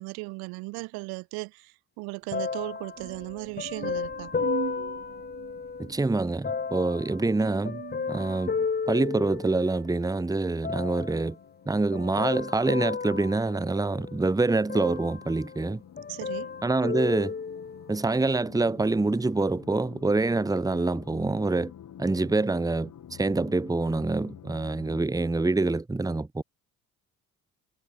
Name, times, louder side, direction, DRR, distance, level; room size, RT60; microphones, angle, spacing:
voice 1, 0.0-4.3 16.1-16.5, right 27 dB, 65° right, 0.8 m, -37 dB
sound 1, 2.3-5.9 6.4-9.9 10.6-11.3 11.9-14.2 14.7-15.7 16.0-18.0 18.7-18.8, left 5 dB, 25° left, 1.4 m, -33 dB
sound 2, 3.0-8.7, right 8 dB, 45° right, 4.7 m, -41 dB
voice 2, 5.8-7.8 8.1-8.5 8.9-11.4 11.7-15.8 16.6-17.3 17.9-21.7 22.0-26.4, right 3 dB, 10° right, 1.1 m, -26 dB
sound 3, 11.3-25.0, left 9 dB, 50° left, 3.9 m, -49 dB
figure-of-eight pair, 45°, 40 cm